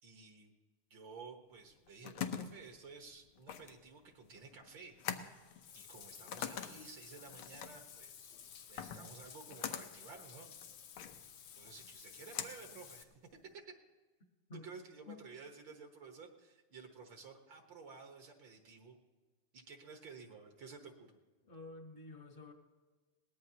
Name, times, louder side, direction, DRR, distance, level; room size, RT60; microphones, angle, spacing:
voice 1, 0.0-0.5 0.9-5.4 5.7-8.3 8.7-10.5 11.6-13.1 13.4-13.8 14.6-19.0 19.5-21.2, right 4 dB, 65° right, 4 dB, 2.0 m, -53 dB
sound 1, 1.6-13.5, left 9 dB, 90° left, 1.7 m, -45 dB
Bathtub (filling or washing), 5.0-13.0, left 8 dB, 70° left, 1.7 m, -55 dB
voice 2, 21.5-22.5, left 3 dB, 35° left, 4 dB, 1.1 m, -50 dB
21.5 x 18.0 x 2.9 m, 1.3 s
omnidirectional pair, 2.3 m